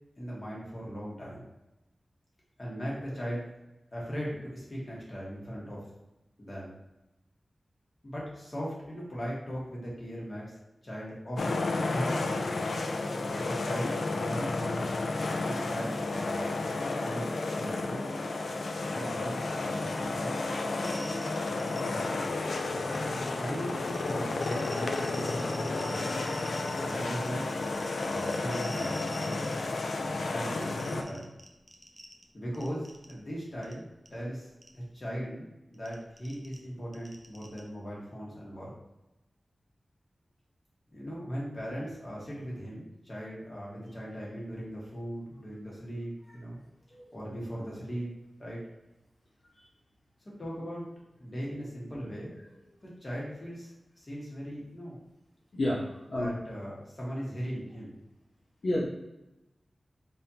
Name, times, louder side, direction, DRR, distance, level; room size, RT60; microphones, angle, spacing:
voice 1, 0.2-1.5 2.6-3.5 3.9-5.8 6.4-6.7 8.0-10.5 10.8-12.6 13.3-14.9 15.4-16.6 16.9-18.2 18.8-20.3 20.7-22.1 23.2-26.1 26.8-27.5 28.0-29.5 30.3-31.3 32.3-33.9 34.1-38.7 40.9-46.6 47.1-48.1 48.4-48.6 50.4-50.9 51.2-52.4 52.8-53.7 54.0-55.0 56.2-58.0, equal, 40° left, -5 dB, 1.5 m, -39 dB
sound 1, 11.4-31.0, left 3 dB, 85° left, 0.4 m, -32 dB
sound 2, 20.8-22.3 22.6-23.3 23.7-29.8 30.1-32.2 32.5-33.1 33.6-33.7 34.1-34.2 34.6-34.7 35.7-37.6, equal, 10° left, 0.6 m, -47 dB
voice 2, 55.5-56.3 58.6-58.8, left 1 dB, 65° left, -6 dB, 0.8 m, -30 dB
4.1 x 3.4 x 2.8 m, 0.98 s
wide cardioid pair, 105°, 0 cm